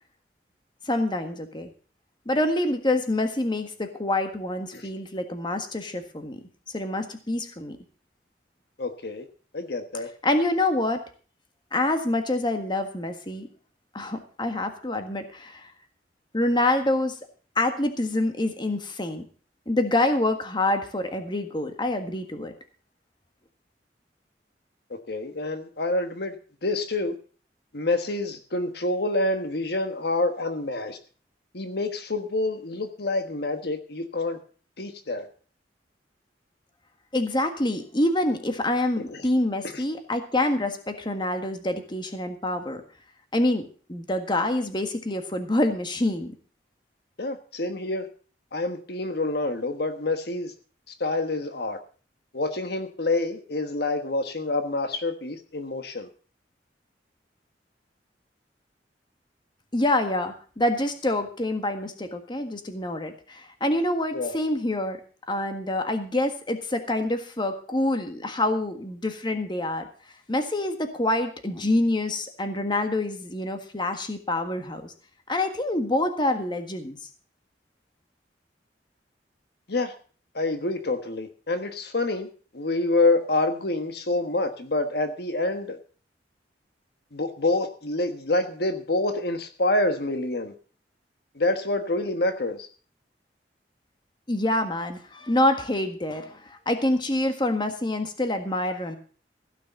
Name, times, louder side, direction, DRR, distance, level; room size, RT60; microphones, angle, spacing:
voice 1, 0.8-1.7 2.2-6.4 6.7-7.8 10.2-11.0 11.7-13.5 13.9-15.7 16.3-17.2 17.5-19.2 19.7-22.5 37.1-42.8 43.3-46.3 59.7-65.0 65.3-69.9 70.3-74.9 75.3-77.0 94.3-99.0, left 1 dB, 25° left, 6 dB, 1.6 m, -26 dB
voice 2, 8.8-9.2 9.5-10.1 25.1-26.4 26.6-27.1 27.7-31.0 31.5-34.4 34.8-35.3 39.1-39.2 39.7-39.8 47.2-48.1 48.5-50.5 51.0-51.8 52.3-56.1 64.1-64.3 79.7-79.9 80.3-82.3 82.5-85.8 87.1-90.5 91.4-92.7, left 2 dB, 60° left, 7 dB, 1.3 m, -27 dB
16.0 x 6.8 x 6.7 m, 0.40 s
head